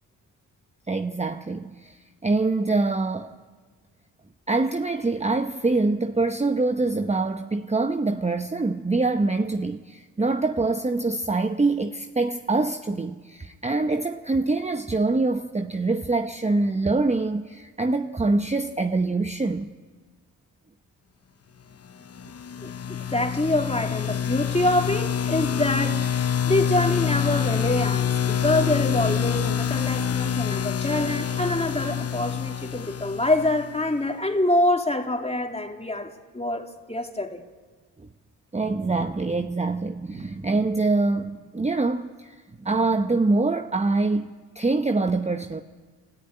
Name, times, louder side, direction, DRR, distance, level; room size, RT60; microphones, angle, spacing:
voice 1, 0.9-3.3 4.5-19.8 38.5-45.6, right 3 dB, 15° right, 0.9 m, -25 dB
sound 1, 22.2-34.0, left 8 dB, 35° left, 0.8 m, -26 dB
voice 2, 22.6-26.2 26.5-37.4, left 1 dB, 15° left, 2.9 m, -25 dB
28.5 x 13.5 x 8.9 m
supercardioid pair, 45°, 41 cm